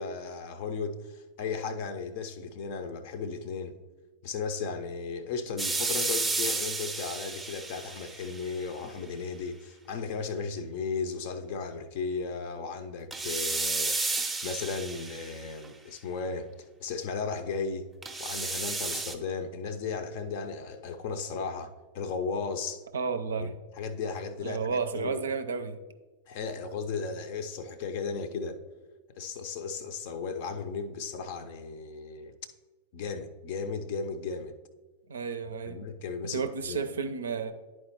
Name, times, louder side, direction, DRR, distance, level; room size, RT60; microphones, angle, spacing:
voice 1, 0.0-3.7 4.2-14.1 14.4-16.5 16.8-17.9 18.2-22.8 23.4-25.2 26.3-28.6 29.2-32.3 32.9-34.5 35.7-36.9, left 5 dB, 50° left, 0.5 m, -35 dB
sound 1, 5.6-8.6 13.1-15.7 18.0-19.1, right 3 dB, 10° right, 0.6 m, -32 dB
voice 2, 22.9-23.5 24.4-25.8 35.1-35.8 36.3-37.5, right 5 dB, 70° right, 0.5 m, -32 dB
11.0 x 4.4 x 2.9 m
figure-of-eight pair, 90°, 0 cm